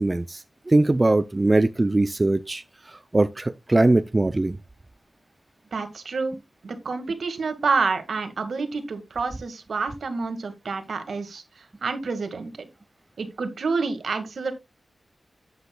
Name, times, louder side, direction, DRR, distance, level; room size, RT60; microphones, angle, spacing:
voice 1, 0.0-4.6, right 2 dB, 30° right, 0.5 m, -21 dB
voice 2, 5.7-6.4 6.6-12.7 13.2-14.5, right 4 dB, 80° right, 1.8 m, -28 dB
11.5 x 8.0 x 2.3 m
wide cardioid pair, 75°, 0 cm